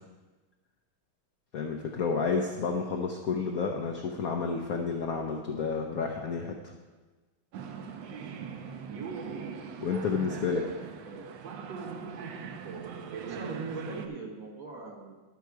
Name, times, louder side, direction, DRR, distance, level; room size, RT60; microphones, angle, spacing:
voice 1, 1.5-6.7 9.8-10.7, left 5 dB, 70° left, 2 dB, 0.8 m, -30 dB
sound 1, 7.5-14.1, right 6 dB, 70° right, 1.3 m, -40 dB
voice 2, 9.0-9.3 10.6-11.3 13.2-15.1, right 3 dB, 50° right, 1 dB, 1.2 m, -42 dB
12.0 x 6.3 x 4.6 m, 1.3 s
omnidirectional pair, 2.3 m